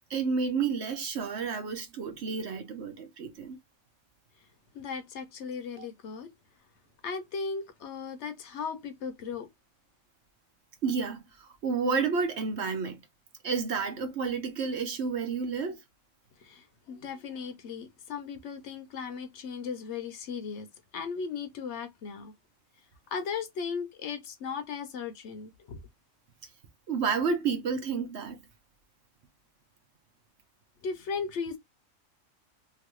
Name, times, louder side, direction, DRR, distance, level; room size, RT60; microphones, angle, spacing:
voice 1, 0.1-3.6 5.8-5.9 10.8-13.0 13.4-15.8 26.9-28.4, right 5 dB, 60° right, 1.0 m, -30 dB
voice 2, 4.7-6.3 7.0-9.5 16.4-20.7 20.9-22.3 23.1-25.8 30.8-31.6, left 5 dB, 65° left, 0.9 m, -37 dB
3.0 x 2.5 x 2.9 m
omnidirectional pair, 1.4 m